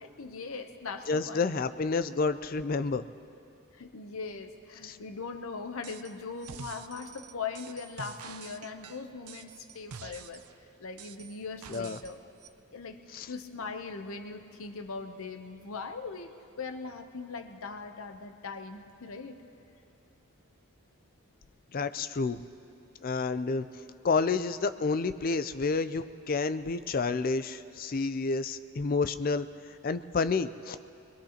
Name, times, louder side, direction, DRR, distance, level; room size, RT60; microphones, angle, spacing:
voice 1, 0.0-1.5 3.7-10.4 10.8-12.3 12.7-13.0 13.3-19.4, left 4 dB, 70° left, 6 dB, 0.8 m, -40 dB
voice 2, 1.1-3.0 4.8-5.0 11.7-12.0 13.1-13.3 21.7-22.4 23.0-23.6 24.0-30.8, left 4 dB, 40° left, 12 dB, 0.4 m, -29 dB
sound 1, 5.8-6.1 6.4-10.5 11.0-12.1 12.4-12.5, right 6 dB, 90° right, 0.6 m, -47 dB
22.5 x 22.0 x 2.9 m, 2.8 s
head